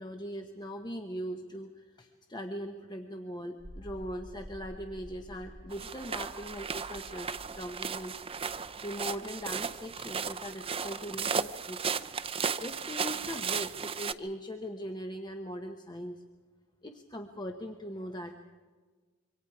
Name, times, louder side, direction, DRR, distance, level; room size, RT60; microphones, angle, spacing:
voice 1, 0.0-8.1 8.8-11.8 12.6-16.2 16.8-18.3, equal, 20° left, 5 dB, 1.0 m, -40 dB
sound 1, 3.6-13.7, equal, 15° right, 6.8 m, -52 dB
Steps in the snow at night in the forest, 5.7-14.1, right 6 dB, 30° right, 0.6 m, -35 dB
26.5 x 24.5 x 4.8 m, 1.4 s
head